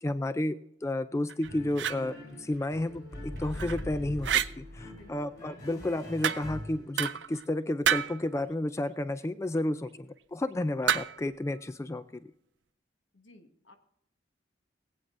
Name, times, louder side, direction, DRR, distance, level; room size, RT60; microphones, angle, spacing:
voice 1, 0.0-12.0, left 1 dB, 15° left, 12 dB, 0.3 m, -32 dB
sound 1, 1.3-2.0 3.4-3.8 4.2-4.5 6.2-6.6 7.0-7.4 7.8-8.2 10.9-11.3, right 8 dB, 65° right, 0.5 m, -29 dB
sound 2, 1.4-7.2, left 1 dB, 60° left, 5.0 m, -42 dB
voice 2, 4.9-5.4 13.1-13.8, left 2 dB, 80° left, 5 dB, 1.5 m, -57 dB
21.0 x 8.7 x 2.6 m, 0.78 s
head